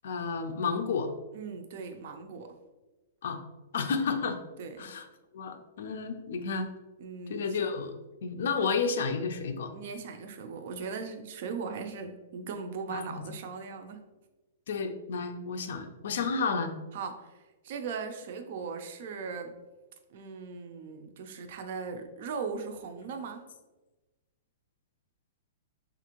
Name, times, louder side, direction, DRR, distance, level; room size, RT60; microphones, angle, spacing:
voice 1, 0.0-1.1 3.2-3.4 3.7-4.4 4.8-5.1 5.3-6.7 7.3-8.0 8.2-9.7 12.9-13.2 14.7-16.7, left 5 dB, 65° left, 7 dB, 0.4 m, -31 dB
voice 2, 1.3-2.5 4.6-4.9 7.0-7.6 9.7-14.0 16.9-19.5 20.1-23.4, right 5 dB, 50° right, 6 dB, 0.4 m, -39 dB
3.4 x 2.5 x 2.9 m, 1.1 s
hypercardioid pair, 165°, 0 cm